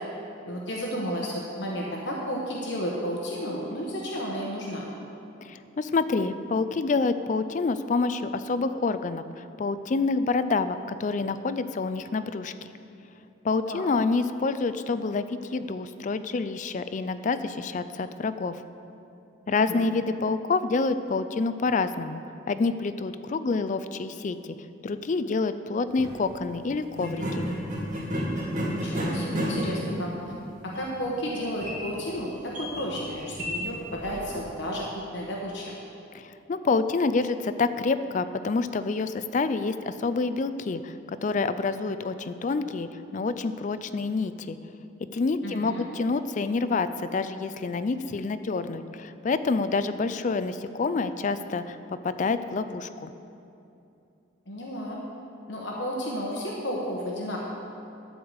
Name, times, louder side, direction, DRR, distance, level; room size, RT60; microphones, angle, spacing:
voice 1, 0.5-4.9 13.7-13.8 19.5-19.9 28.7-30.1 30.6-35.7 45.4-45.8 54.5-55.0 55.5-57.4, equal, 65° left, -2 dB, 1.1 m, -32 dB
voice 2, 5.4-12.5 13.4-18.6 19.5-22.2 22.5-24.6 24.8-27.5 36.1-44.6 45.1-51.8 52.0-53.1, left 4 dB, 40° left, 12 dB, 0.4 m, -27 dB
sound 1, 25.9-26.1 26.9-34.4, equal, 40° right, 2.1 m, -32 dB
12.0 x 4.8 x 8.0 m, 2.7 s
head